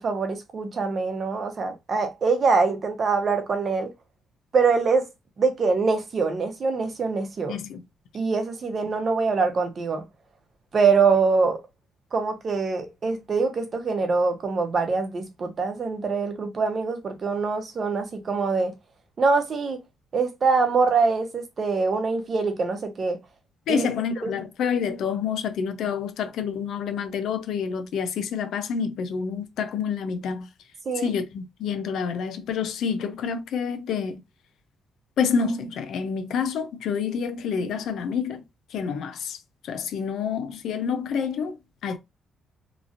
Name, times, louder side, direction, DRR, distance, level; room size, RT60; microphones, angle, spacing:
voice 1, 0.0-3.9 4.5-5.1 5.4-7.6 8.1-10.0 10.7-11.6 12.1-18.7 19.2-19.8 20.1-23.2 23.7-23.9 24.2-24.3 30.9-31.1, right 4 dB, 45° right, 0.9 m, -24 dB
voice 2, 7.5-7.8 23.7-30.5 31.0-34.2 35.2-39.4 39.6-41.6 41.8-42.0, left 6 dB, 75° left, 0.5 m, -28 dB
3.0 x 2.5 x 2.5 m
cardioid pair, 90°, 0 cm